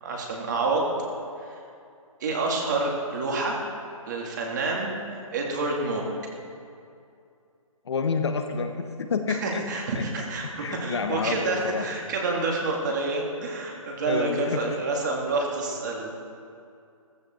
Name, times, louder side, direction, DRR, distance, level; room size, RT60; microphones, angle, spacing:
voice 1, 0.0-0.9 1.4-1.6 2.2-3.6 4.1-6.1 9.3-16.1, right 3 dB, 30° right, -1 dB, 2.5 m, -28 dB
voice 2, 7.8-9.4 9.9-10.0 10.6-11.9 14.0-14.6, left 5 dB, 50° left, 5 dB, 1.3 m, -28 dB
16.0 x 14.5 x 4.5 m, 2.5 s
hypercardioid pair, 170°, 18 cm